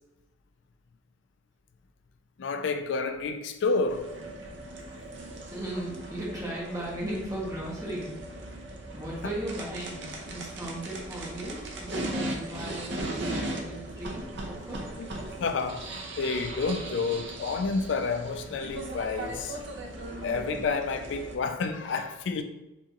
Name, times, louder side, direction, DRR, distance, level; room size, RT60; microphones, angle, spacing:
voice 1, 2.4-4.1 15.4-19.6 20.2-22.4, left 4 dB, 70° left, 0.4 m, -30 dB
sound 1, 3.9-21.3, right 1 dB, 60° right, 0.8 m, -38 dB
voice 2, 5.4-8.6 8.9-14.8, right 1 dB, 15° right, 1.4 m, -37 dB
4.4 x 3.9 x 2.9 m
head